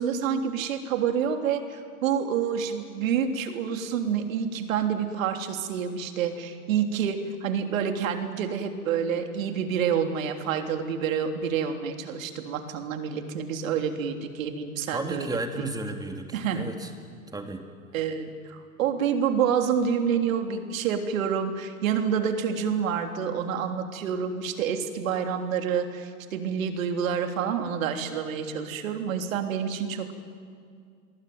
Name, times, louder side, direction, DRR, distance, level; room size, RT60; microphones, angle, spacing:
voice 1, 0.0-15.3 15.6-15.7 16.3-16.7 17.9-30.1, right 7 dB, 60° right, 5 dB, 3.4 m, -28 dB
voice 2, 14.9-16.9 17.3-17.6, right 2 dB, 10° right, 5 dB, 2.9 m, -33 dB
28.0 x 22.5 x 9.4 m, 2.2 s
hypercardioid pair, 110°, 44 cm